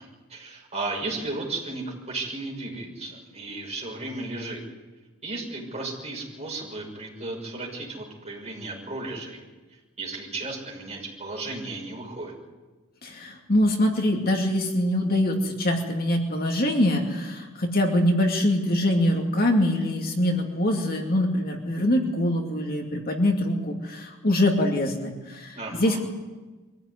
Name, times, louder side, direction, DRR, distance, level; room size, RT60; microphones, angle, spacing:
voice 1, 0.0-4.6 5.2-9.4 10.0-12.3 25.5-26.0, right 2 dB, 30° right, -1 dB, 6.2 m, -34 dB
voice 2, 13.0-26.0, left 1 dB, 45° left, 2 dB, 2.5 m, -24 dB
23.5 x 15.5 x 9.7 m, 1.3 s
head